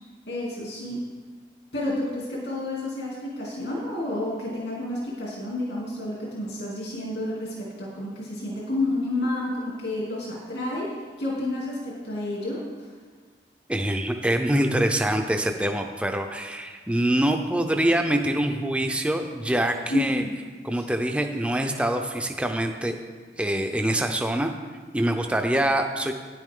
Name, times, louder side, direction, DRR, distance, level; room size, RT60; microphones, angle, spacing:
voice 1, 0.3-1.0 1.7-10.9 11.2-12.6 19.9-20.3 20.7-20.8, left 1 dB, 80° left, -5 dB, 2.9 m, -30 dB
voice 2, 13.7-20.2 20.6-23.0 23.4-24.5 24.9-26.1, right 1 dB, 5° right, 4 dB, 0.5 m, -25 dB
11.0 x 10.0 x 3.8 m, 1.5 s
head